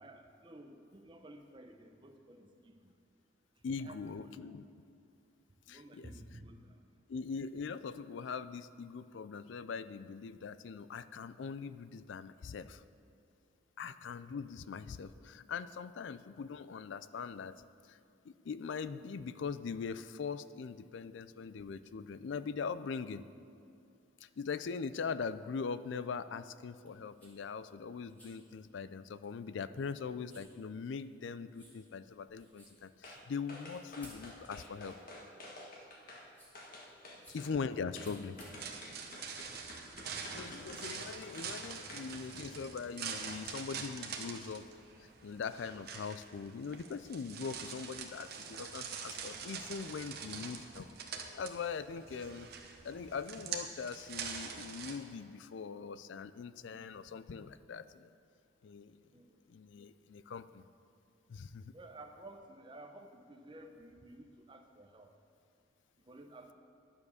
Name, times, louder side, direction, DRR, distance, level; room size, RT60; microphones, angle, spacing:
voice 1, 0.0-2.9 3.8-4.6 5.7-6.9 37.0-37.2 59.1-59.4 61.7-65.1 66.1-66.5, right 1 dB, 25° right, 5 dB, 0.7 m, -53 dB
voice 2, 3.6-4.7 5.7-6.1 7.1-12.8 13.8-17.6 17.9-18.0 18.2-23.2 24.2-35.0 37.3-38.4 40.1-44.7 45.0-50.9 51.3-52.5 52.8-58.1 58.6-59.0 59.5-60.6 61.3-61.7, left 5 dB, 65° left, 14 dB, 0.4 m, -41 dB
sound 1, 26.8-39.9, equal, 10° left, 2.2 m, -63 dB
sound 2, 33.0-33.2 33.5-36.2 36.5-37.5 38.0-42.1 42.5-42.6, left 1 dB, 45° left, 1.5 m, -50 dB
sound 3, 38.5-55.0, right 6 dB, 50° right, 0.9 m, -45 dB
11.0 x 7.2 x 6.4 m, 2.5 s
head